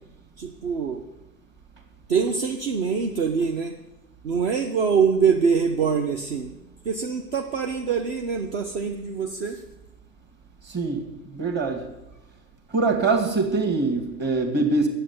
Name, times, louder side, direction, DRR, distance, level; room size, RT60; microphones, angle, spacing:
voice 1, 0.4-1.0 2.1-3.7 4.2-6.5 6.8-9.6, right 6 dB, 45° right, 3 dB, 1.1 m, -24 dB
voice 2, 10.7-11.0 11.3-11.9 12.7-14.9, right 3 dB, 20° right, 4 dB, 2.1 m, -23 dB
9.8 x 8.0 x 9.7 m, 0.98 s
figure-of-eight pair, 115°, 50 cm